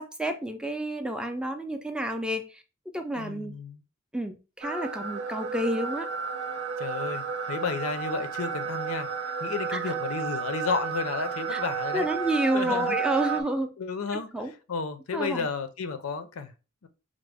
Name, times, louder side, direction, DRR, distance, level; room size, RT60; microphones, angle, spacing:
voice 1, 0.0-2.6 2.9-3.5 4.1-6.1 9.7-9.9 11.5-11.6 11.9-13.7 14.3-14.5 15.1-15.5, right 1 dB, 5° right, 0.3 m, -29 dB
voice 2, 3.2-3.8 6.8-9.1 9.4-12.1 12.5-13.0 13.8-14.3 14.7-16.5 16.8-16.9, left 5 dB, 75° left, 0.5 m, -32 dB
sound 1, 4.6-13.4, right 6 dB, 85° right, 0.5 m, -32 dB
4.9 x 2.0 x 3.4 m
head